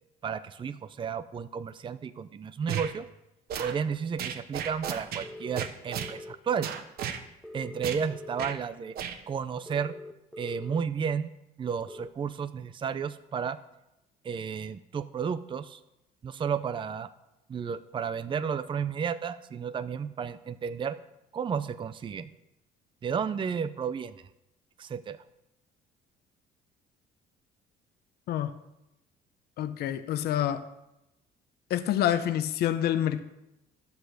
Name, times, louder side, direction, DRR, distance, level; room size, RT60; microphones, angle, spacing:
voice 1, 0.2-3.1 3.6-6.7 7.5-9.0 9.3-10.0 10.4-11.3 11.6-13.6 14.2-15.8 16.2-17.1 17.5-21.0 21.3-22.3 23.0-24.1 24.8-25.2, right 7 dB, 30° right, 12 dB, 0.6 m, -32 dB
sound 1, 2.7-2.9 3.5-3.8 4.2-5.3 5.6-6.1 6.6-7.2 7.8-8.0 8.4-8.6 9.0-9.2, right 8 dB, 70° right, 1.2 m, -34 dB
sound 2, 5.2-6.3 7.4-8.6 9.7-10.8 11.9-12.1, left 1 dB, ahead, 0.9 m, -43 dB
voice 2, 29.6-30.7 31.7-33.2, left 11 dB, 70° left, 11 dB, 0.9 m, -27 dB
12.0 x 7.9 x 6.5 m, 0.90 s
cardioid pair, 110°, 17 cm